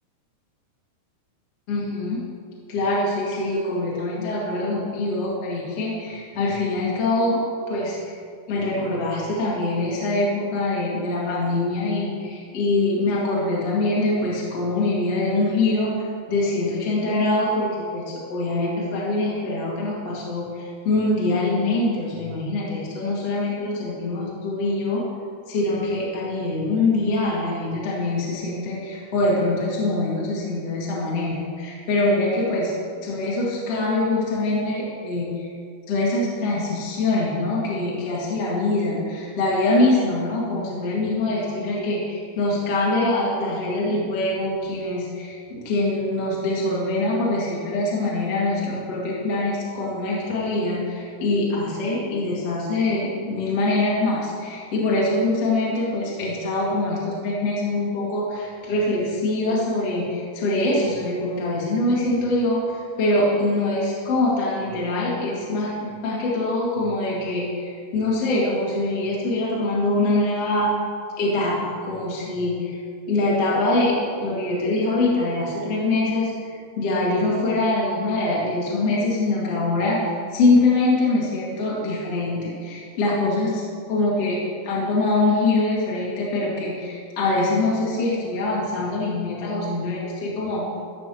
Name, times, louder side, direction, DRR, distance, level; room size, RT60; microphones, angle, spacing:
voice 1, 1.7-2.3 2.7-8.2 8.5-25.1 25.5-32.7 33.0-35.5 35.9-70.7 71.2-72.8 73.1-84.4 84.6-90.7, left 2 dB, 45° left, -5 dB, 2.4 m, -24 dB
14.5 x 5.9 x 7.4 m, 2.2 s
omnidirectional pair, 5.0 m